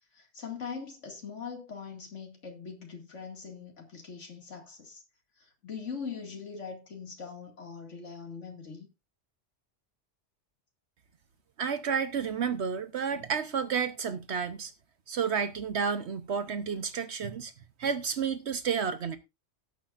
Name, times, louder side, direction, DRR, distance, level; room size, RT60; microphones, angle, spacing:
voice 1, 0.1-5.0 5.4-8.9, left 5 dB, 85° left, 2.6 m, -42 dB
voice 2, 11.6-14.7 15.1-17.5 17.8-19.2, right 6 dB, 65° right, 1.1 m, -31 dB
17.5 x 8.6 x 2.5 m
omnidirectional pair, 1.2 m